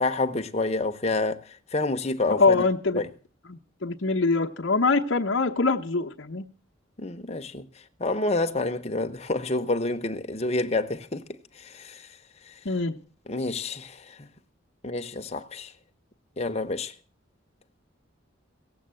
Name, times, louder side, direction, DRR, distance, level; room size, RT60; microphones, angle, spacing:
voice 1, 0.0-2.6 2.9-3.1 7.0-7.7 8.0-11.2 11.6-12.1 12.5-12.6 13.3-14.3 14.8-15.7 16.4-16.9, left 2 dB, 30° left, 0.9 m, -28 dB
voice 2, 2.3-3.0 3.5-6.4 12.6-13.0, left 3 dB, 60° left, 0.9 m, -24 dB
17.0 x 7.8 x 7.7 m
head